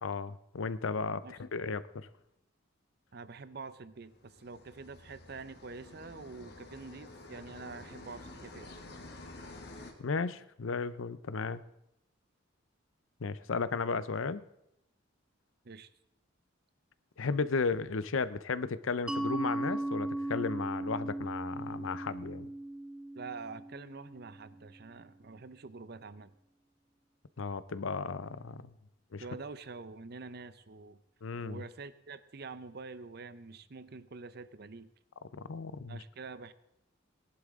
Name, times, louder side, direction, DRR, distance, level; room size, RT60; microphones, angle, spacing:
voice 1, 0.0-2.1 10.0-11.6 13.2-14.4 17.2-22.5 27.4-28.6 29.1-29.2 31.2-31.6 35.3-36.0, left 4 dB, 85° left, 15 dB, 0.6 m, -34 dB
voice 2, 3.1-8.7 15.6-15.9 23.1-26.3 29.2-31.0 31.4-34.9 35.9-36.5, right 4 dB, 55° right, 14 dB, 0.6 m, -46 dB
sound 1, 4.1-9.9, left 2 dB, 55° left, 1.9 m, -50 dB
Mallet percussion, 19.1-24.5, right 1 dB, 5° right, 0.4 m, -37 dB
20.5 x 11.0 x 3.6 m, 0.82 s
head